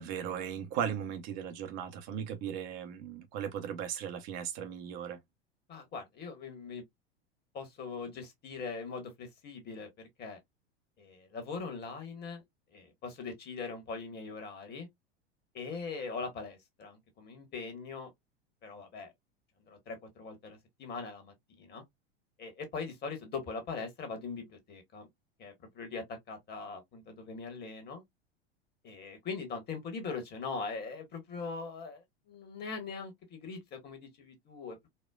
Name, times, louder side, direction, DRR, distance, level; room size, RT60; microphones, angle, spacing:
voice 1, 0.0-5.2, right 8 dB, 45° right, 0.7 m, -37 dB
voice 2, 5.7-6.8 7.5-9.9 10.2-10.4 11.0-12.4 12.7-14.9 15.5-18.1 18.6-19.1 19.7-21.8 22.4-25.1 25.4-28.0 28.8-34.9, left 4 dB, 30° left, 1.3 m, -41 dB
4.2 x 2.1 x 2.3 m
figure-of-eight pair, 80°, 31 cm